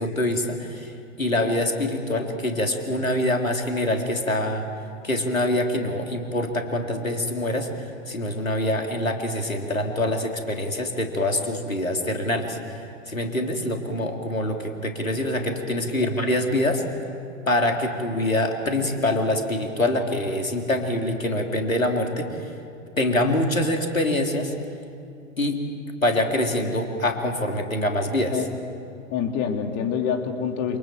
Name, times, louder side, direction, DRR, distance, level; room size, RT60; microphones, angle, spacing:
voice 1, 0.0-4.7 5.0-16.9 17.5-22.5 23.0-24.5 25.4-25.6 26.0-28.4, left 1 dB, 90° left, 3 dB, 3.5 m, -25 dB
voice 2, 29.1-30.8, left 7 dB, 40° left, 4 dB, 2.9 m, -26 dB
28.0 x 27.0 x 7.7 m, 2.4 s
figure-of-eight pair, 95°, 39 cm